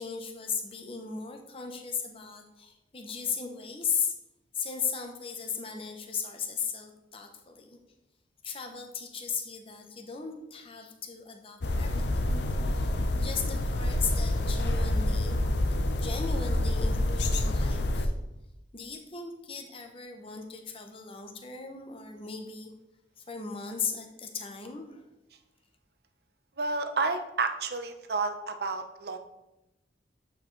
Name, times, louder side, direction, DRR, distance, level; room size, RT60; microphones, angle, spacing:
voice 1, 0.0-4.1 4.5-7.8 8.4-12.4 12.7-15.4 15.7-18.2 18.7-22.7 23.2-25.1, left 6 dB, 30° left, 4 dB, 0.8 m, -37 dB
sound 1, 11.6-18.1, left 1 dB, 70° left, 0.6 m, -27 dB
voice 2, 26.6-29.2, right 3 dB, 60° right, 8 dB, 0.6 m, -30 dB
8.4 x 4.7 x 3.2 m, 0.93 s
head